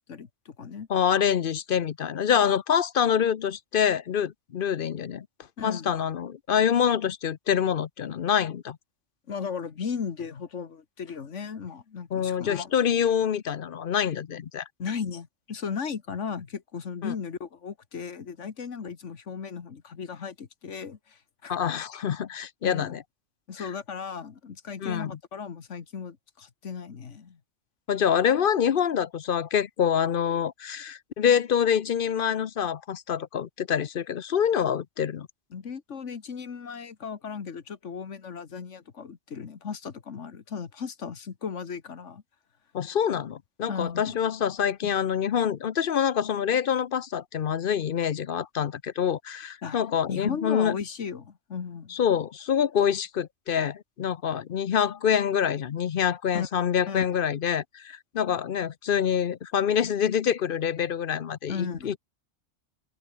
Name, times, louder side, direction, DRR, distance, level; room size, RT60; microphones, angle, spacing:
voice 1, 0.1-0.9 5.6-5.9 9.3-12.7 14.8-21.6 22.6-23.0 23.5-27.4 35.5-42.2 43.7-44.2 44.8-44.9 49.6-49.8 50.1-52.0 56.3-56.5 56.9-57.1 61.5-62.0, left 6 dB, 80° left, 1.8 m, -36 dB
voice 2, 0.9-5.3 5.6-8.8 12.1-14.6 17.0-17.1 21.5-23.0 23.6-23.7 24.8-25.1 27.9-35.3 42.7-50.8 51.9-62.0, left 8 dB, 55° left, 0.8 m, -26 dB
open air
omnidirectional pair, 1.2 m